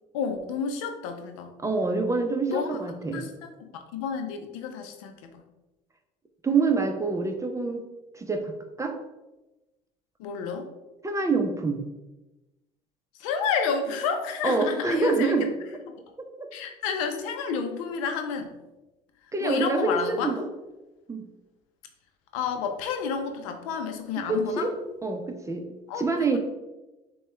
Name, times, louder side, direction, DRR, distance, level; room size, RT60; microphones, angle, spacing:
voice 1, 0.1-1.5 2.5-2.8 3.1-5.4 10.2-10.7 13.2-15.5 15.9-16.0 16.5-18.5 19.4-20.3 22.3-24.7 25.9-26.4, left 6 dB, 85° left, 5 dB, 0.6 m, -30 dB
voice 2, 1.6-3.2 6.4-7.8 8.1-9.0 11.0-11.8 14.4-15.5 16.4-16.5 19.3-20.4 21.1-21.3 24.3-24.7 25.0-25.7 26.0-26.4, right 3 dB, 20° right, 5 dB, 0.7 m, -26 dB
6.9 x 2.3 x 3.2 m, 1.0 s
supercardioid pair, 75°, 17 cm